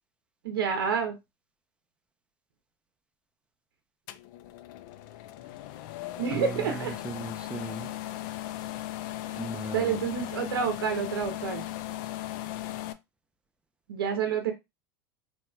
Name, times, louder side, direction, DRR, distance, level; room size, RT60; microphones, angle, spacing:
voice 1, 0.4-1.1 6.2-7.0 9.7-11.6 13.9-14.5, right 7 dB, 80° right, 0.7 m, -28 dB
sound 1, 4.1-12.9, left 14 dB, 65° left, 0.4 m, -37 dB
voice 2, 6.3-7.9 9.4-10.1, right 3 dB, 10° right, 0.5 m, -38 dB
3.1 x 2.8 x 2.2 m
hypercardioid pair, 95°, 12 cm